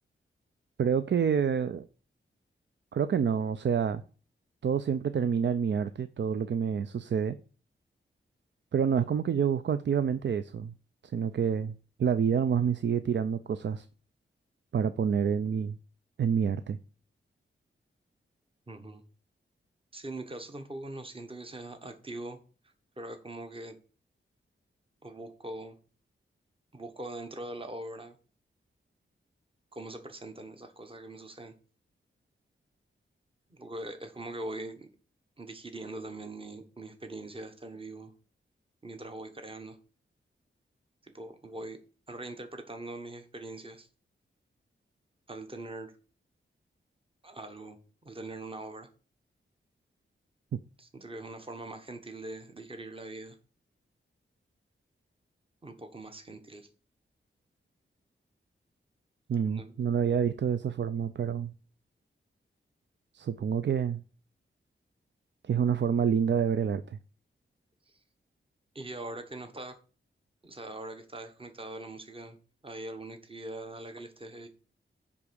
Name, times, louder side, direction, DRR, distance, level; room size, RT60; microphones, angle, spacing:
voice 1, 0.8-1.9 2.9-4.0 4.6-7.4 8.7-10.7 11.1-13.9 14.7-15.8 16.2-16.8 50.5-50.6 59.3-61.5 63.1-64.0 65.4-67.0, right 7 dB, 60° right, 12 dB, 0.5 m, -28 dB
voice 2, 18.7-19.0 19.9-22.4 23.0-23.8 25.0-25.8 26.7-28.2 29.7-31.5 33.5-34.9 35.4-38.1 38.8-39.8 41.0-41.8 42.1-43.9 45.3-45.9 47.2-47.8 48.0-48.9 50.8-53.4 55.6-56.7 59.5-59.8 67.9-68.0 68.7-69.8 70.4-72.4 72.6-74.5, right 2 dB, 25° right, 7 dB, 1.2 m, -42 dB
9.8 x 3.6 x 6.9 m, 0.39 s
wide cardioid pair, 85°, 21 cm